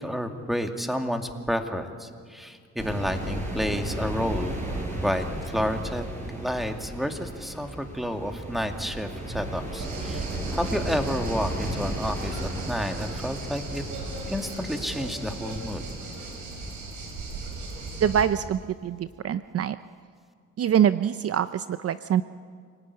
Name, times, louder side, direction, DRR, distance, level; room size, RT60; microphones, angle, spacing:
voice 1, 0.0-4.6 5.0-6.0 6.3-10.3 10.5-13.8 14.3-15.9, equal, ahead, 5 dB, 2.4 m, -30 dB
sound 1, 2.8-16.7, right 1 dB, 25° right, 7.6 m, -35 dB
sound 2, 9.8-18.2, right 3 dB, 80° right, 6.0 m, -37 dB
voice 2, 18.0-19.8 20.6-22.2, right 9 dB, 50° right, 13 dB, 0.7 m, -24 dB
27.0 x 18.5 x 9.9 m, 2.2 s
cardioid pair, 90°, 30 cm